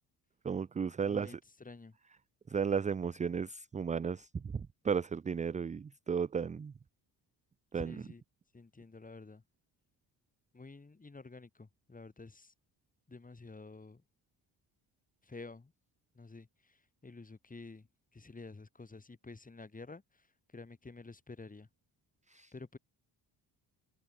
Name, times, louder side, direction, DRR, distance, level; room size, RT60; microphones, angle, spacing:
voice 1, 0.4-1.4 2.5-6.7 7.7-8.0 22.3-22.5, right 6 dB, 20° right, 0.4 m, -34 dB
voice 2, 1.0-2.0 7.7-8.2 8.5-9.4 10.5-12.5 13.1-14.0 15.2-15.7 16.1-17.9 18.1-20.3 20.5-21.7 22.5-22.8, left 3 dB, 20° left, 5.1 m, -50 dB
cardioid pair, 125°, 42 cm